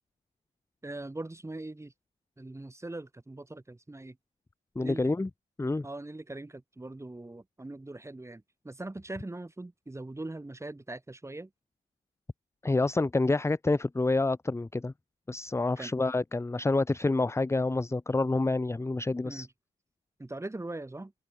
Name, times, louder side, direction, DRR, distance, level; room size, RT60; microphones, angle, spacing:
voice 1, 0.8-1.9 2.4-4.2 4.8-5.1 5.8-11.5 15.8-15.9 19.2-19.5 20.2-21.1, right 2 dB, 15° right, 7.4 m, -41 dB
voice 2, 4.8-5.3 5.6-5.8 12.6-14.9 15.3-19.5, left 2 dB, 15° left, 1.1 m, -28 dB
cardioid pair, 90°, 20 cm